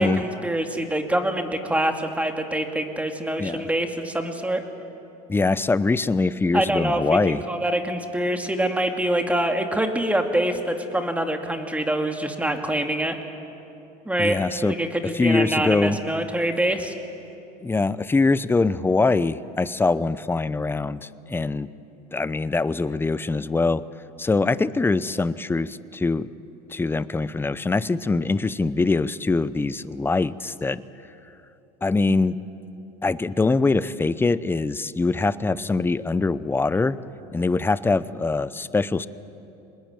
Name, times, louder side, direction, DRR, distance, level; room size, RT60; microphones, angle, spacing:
voice 1, 0.0-4.6 6.5-13.2 14.1-16.9, right 1 dB, 5° right, 5 dB, 2.3 m, -25 dB
voice 2, 3.4-3.7 5.3-7.4 14.2-14.8 15.1-16.0 17.6-21.7 22.1-23.9 24.2-26.3 26.7-30.8 31.8-32.4 33.0-37.0 37.3-39.1, left 3 dB, 10° left, 16 dB, 0.7 m, -23 dB
25.0 x 20.5 x 9.1 m, 2.9 s
supercardioid pair, 105°, 20 cm